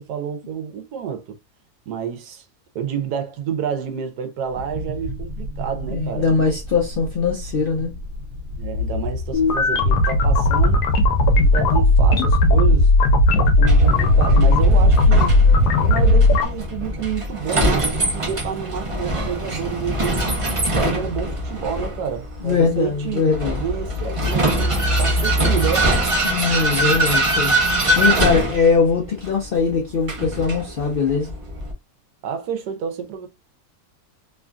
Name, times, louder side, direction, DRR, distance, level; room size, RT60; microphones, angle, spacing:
voice 1, 0.0-1.4 1.9-2.4 2.7-6.2 8.6-10.8 11.3-12.9 13.3-15.4 15.8-20.3 20.8-23.3 23.6-25.9 32.2-33.3, right 7 dB, 85° right, 1.2 m, -29 dB
sound 1, 4.5-16.9, left 2 dB, 65° right, 1.1 m, -31 dB
voice 2, 5.9-7.9 22.4-23.6 26.2-27.6 28.0-31.3, left 5 dB, 70° left, 0.5 m, -21 dB
sound 2, 9.3-16.5, left 1 dB, 85° left, 1.2 m, -15 dB
Vehicle, 13.6-31.7, right 1 dB, 40° right, 0.4 m, -23 dB
3.1 x 2.5 x 2.2 m
omnidirectional pair, 1.7 m